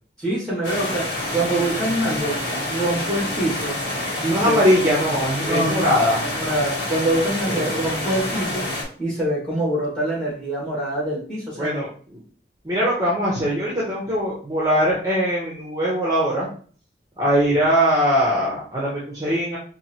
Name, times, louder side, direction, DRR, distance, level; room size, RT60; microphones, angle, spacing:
voice 1, 0.2-3.8 4.2-4.6 5.4-5.9 6.2-8.7 9.0-11.8, right 1 dB, 5° left, -6 dB, 2.0 m, -25 dB
sound 1, 0.6-8.8, left 1 dB, 70° left, 1.4 m, -27 dB
voice 2, 4.3-6.2 7.5-7.7 11.6-12.2 12.6-16.5 17.2-19.6, equal, 20° right, -5 dB, 0.9 m, -21 dB
4.5 x 2.7 x 2.9 m, 0.43 s
head